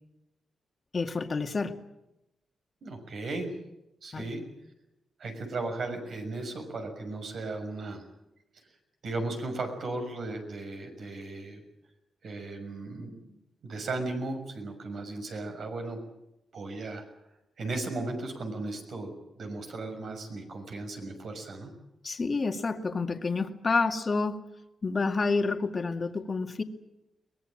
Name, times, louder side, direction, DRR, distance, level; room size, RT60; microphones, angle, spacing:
voice 1, 0.9-1.7 4.1-4.2 22.0-24.4 24.8-26.6, left 4 dB, 35° left, 5 dB, 2.1 m, -29 dB
voice 2, 2.8-3.5 4.0-4.4 5.2-8.0 9.0-11.6 12.2-16.0 16.5-17.0 17.6-21.7, right 2 dB, 65° right, 5 dB, 6.3 m, -36 dB
23.0 x 20.5 x 8.8 m, 0.90 s
cardioid pair, 105°, 0 cm